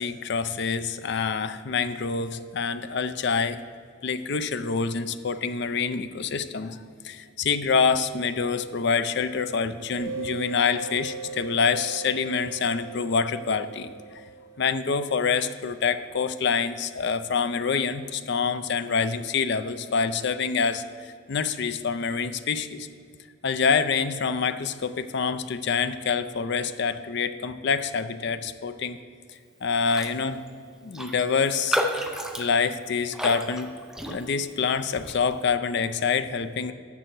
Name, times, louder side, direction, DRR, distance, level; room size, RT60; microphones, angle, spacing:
voice 1, 0.0-3.6 4.0-6.8 7.0-13.9 14.6-22.9 23.4-29.0 29.6-30.4 30.8-31.8 32.4-33.7 34.1-36.7, left 5 dB, 60° left, 12 dB, 0.5 m, -26 dB
sound 1, 10.0-15.3, right 4 dB, 55° right, 3.1 m, -39 dB
Raindrop, 29.8-30.2 30.5-30.6 30.9-34.5 35.0-35.2, equal, 5° right, 0.6 m, -31 dB
13.0 x 7.4 x 4.6 m, 2.2 s
head